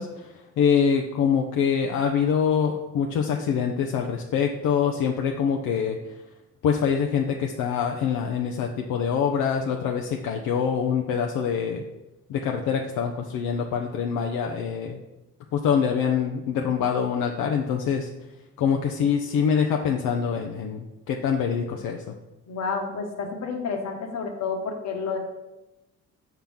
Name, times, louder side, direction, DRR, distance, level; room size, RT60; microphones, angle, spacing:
voice 1, 0.0-6.0 6.6-11.8 12.3-15.0 15.5-18.1 18.6-22.1, left 7 dB, 80° left, 2 dB, 0.6 m, -25 dB
voice 2, 22.5-25.2, left 5 dB, 60° left, 3 dB, 1.2 m, -30 dB
5.8 x 5.8 x 3.5 m, 1.0 s
cardioid pair, 90°, 30 cm